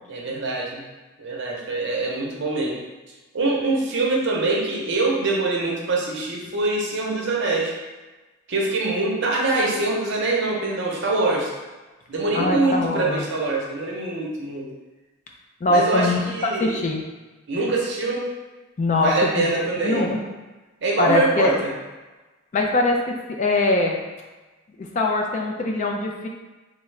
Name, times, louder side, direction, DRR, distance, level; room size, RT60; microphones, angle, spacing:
voice 1, 0.1-0.8 1.2-2.8 3.3-7.7 8.5-11.5 12.1-14.7 15.7-16.7 17.5-18.3 18.9-20.1 20.8-21.7, right 2 dB, 60° right, -3 dB, 0.7 m, -24 dB
voice 2, 12.3-13.2 15.6-17.0 18.8-20.2 21.0-21.5 22.5-24.0 24.8-26.3, left 2 dB, 35° left, 1 dB, 0.3 m, -22 dB
3.5 x 2.0 x 3.2 m, 1.2 s
head